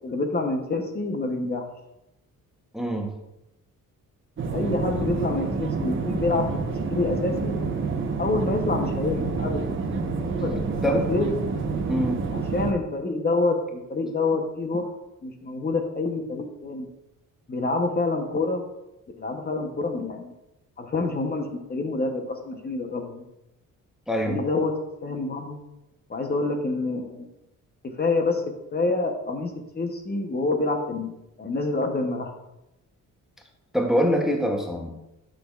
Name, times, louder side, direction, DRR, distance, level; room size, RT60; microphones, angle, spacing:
voice 1, 0.0-1.6 4.5-7.6 8.2-9.6 10.4-11.3 12.3-15.0 15.2-16.9 17.5-18.6 19.2-20.3 20.8-23.2 24.3-24.7 25.0-25.6 26.1-27.3 27.8-28.4 28.7-31.1 31.4-32.3, left 3 dB, 30° left, 4 dB, 0.9 m, -27 dB
voice 2, 2.7-3.1 10.8-11.0 11.9-12.2 24.1-24.4 33.7-35.0, equal, ahead, 2 dB, 0.8 m, -24 dB
sound 1, 4.4-12.7, right 4 dB, 35° right, 0.9 m, -28 dB
11.0 x 6.3 x 2.4 m, 0.89 s
cardioid pair, 130°, 33 cm